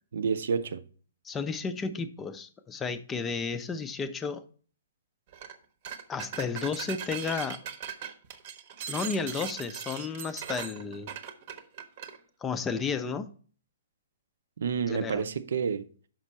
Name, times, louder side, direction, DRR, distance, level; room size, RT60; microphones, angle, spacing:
voice 1, 0.1-0.8 14.6-15.9, right 6 dB, 55° right, 0.5 m, -29 dB
voice 2, 1.2-4.4 6.1-7.6 8.9-11.1 12.4-13.3 14.9-15.2, left 5 dB, 15° left, 0.5 m, -32 dB
sound 1, 5.3-5.6 5.8-12.2, right 8 dB, 40° right, 0.9 m, -39 dB
6.0 x 5.1 x 5.4 m
figure-of-eight pair, 120°, 0 cm